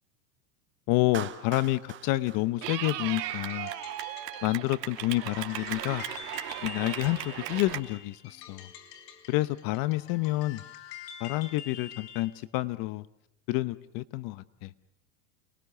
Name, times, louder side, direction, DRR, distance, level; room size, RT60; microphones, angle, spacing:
voice 1, 0.9-3.7 4.4-6.0 6.6-8.7 9.3-10.6 11.2-13.1 13.5-14.7, left 18 dB, 45° left, 16 dB, 0.9 m, -29 dB
Clapping, 1.1-3.4, right 9 dB, 25° right, 1.6 m, -43 dB
Clapping / Cheering, 2.6-7.8, right 14 dB, 80° right, 3.0 m, -37 dB
sound 1, 3.3-12.4, left 9 dB, 80° left, 4.7 m, -47 dB
28.5 x 21.5 x 6.9 m, 0.81 s
supercardioid pair, 145°, 49 cm